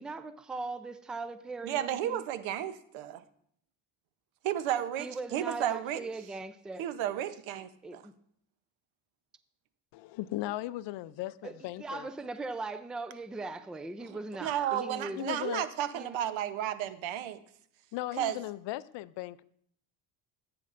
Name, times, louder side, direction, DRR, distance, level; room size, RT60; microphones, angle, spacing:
voice 1, 0.0-2.3 5.0-6.9 7.8-8.1 11.4-15.3 15.9-16.2, right 3 dB, ahead, 0.3 m, -39 dB
voice 2, 1.6-3.2 4.4-6.0 6.8-8.0 14.4-17.4 18.2-18.4, right 11 dB, 75° right, 0.9 m, -33 dB
voice 3, 9.9-12.1 15.2-15.7 17.9-19.4, left 16 dB, 65° left, 0.5 m, -37 dB
14.0 x 8.6 x 2.5 m
cardioid pair, 105°, 47 cm